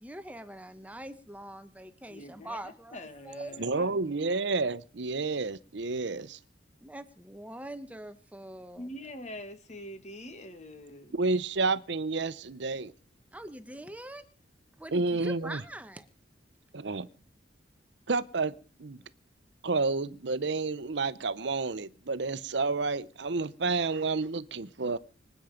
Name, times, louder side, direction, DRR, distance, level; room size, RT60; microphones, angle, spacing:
voice 1, 0.0-3.6 6.8-8.9 13.3-14.2 14.8-16.1, right 1 dB, 10° right, 1.0 m, -43 dB
voice 2, 2.1-2.6 2.9-4.0 8.8-11.2, left 1 dB, 40° left, 2.0 m, -44 dB
voice 3, 3.6-6.4 11.1-12.9 14.9-15.6 16.7-17.1 18.1-18.5 18.8-19.0 19.6-25.0, right 3 dB, 70° right, 0.8 m, -30 dB
25.0 x 9.0 x 5.1 m
head